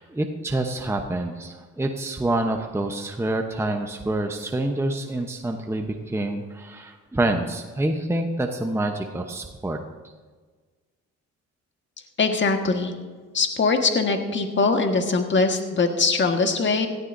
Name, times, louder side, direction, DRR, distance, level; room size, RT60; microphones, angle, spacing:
voice 1, 0.0-9.8, right 1 dB, 10° right, 4 dB, 0.9 m, -27 dB
voice 2, 12.2-12.9 13.3-16.9, left 4 dB, 40° left, 5 dB, 1.6 m, -22 dB
17.5 x 13.5 x 2.7 m, 1.4 s
cardioid pair, 90°, 30 cm